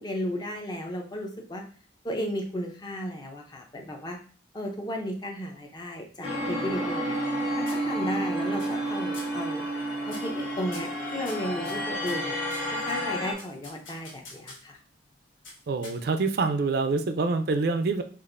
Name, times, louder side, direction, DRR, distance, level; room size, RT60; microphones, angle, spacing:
voice 1, 0.0-1.6 2.0-4.2 4.5-7.2 7.6-9.6 10.1-12.4 12.7-14.8, equal, 20° left, 2 dB, 0.5 m, -34 dB
sound 1, 6.2-13.3, right 1 dB, 55° left, 1.4 m, -30 dB
sound 2, 6.7-7.4 7.7-8.2 8.6-8.9 9.1-9.4 10.1-10.4 10.7-12.7 13.4-14.8 15.4-16.3, left 2 dB, 80° left, 1.3 m, -46 dB
voice 2, 15.7-18.0, right 3 dB, 50° right, 8 dB, 0.4 m, -26 dB
5.1 x 2.4 x 2.5 m, 0.41 s
head